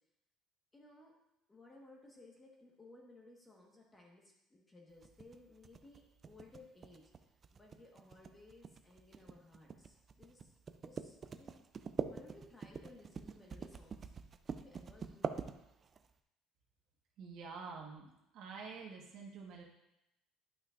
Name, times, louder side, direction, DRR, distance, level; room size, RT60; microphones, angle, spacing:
voice 1, 0.7-1.1 1.5-7.0 7.5-10.5 10.8-11.6 12.1-14.1 14.5-15.4, left 2 dB, 15° left, -1 dB, 1.4 m, -59 dB
sound 1, 5.0-16.1, right 5 dB, 25° right, 0.4 m, -44 dB
voice 2, 17.2-19.6, right 5 dB, 60° right, -1 dB, 1.4 m, -48 dB
11.5 x 5.8 x 2.5 m, 0.86 s
cardioid pair, 155°, 0 cm